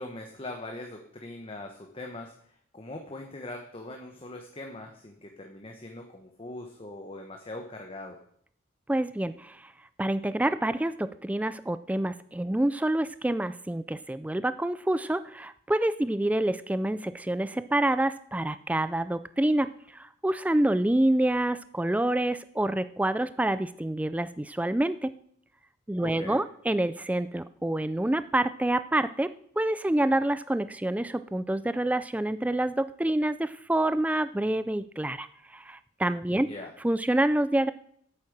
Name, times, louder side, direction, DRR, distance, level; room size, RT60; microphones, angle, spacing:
voice 1, 0.0-8.2 26.0-26.4 36.3-36.7, left 2 dB, 30° left, 2 dB, 1.0 m, -41 dB
voice 2, 8.9-9.7 10.0-25.1 25.9-36.5 36.8-37.7, right 1 dB, 5° right, 13 dB, 0.3 m, -27 dB
8.5 x 8.3 x 6.6 m, 0.65 s
head